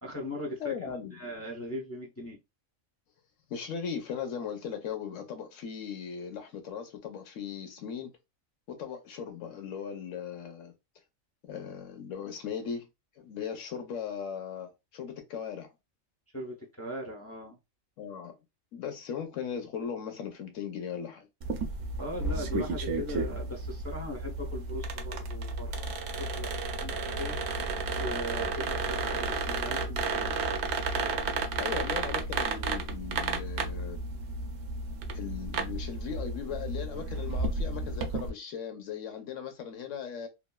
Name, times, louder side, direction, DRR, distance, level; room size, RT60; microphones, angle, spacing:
voice 1, 0.0-2.4 16.3-17.6 22.0-26.9 27.2-27.4 28.0-30.5, left 1 dB, 25° left, 0.3 m, -39 dB
voice 2, 0.6-1.2 3.5-8.1 8.7-10.7 11.4-12.9 13.2-15.7 18.0-18.3 18.7-21.3 31.6-34.0 35.1-40.3, left 7 dB, 75° left, 1.0 m, -38 dB
sound 1, 21.4-38.3, right 3 dB, 65° right, 0.7 m, -32 dB
3.0 x 2.3 x 2.2 m
omnidirectional pair, 1.4 m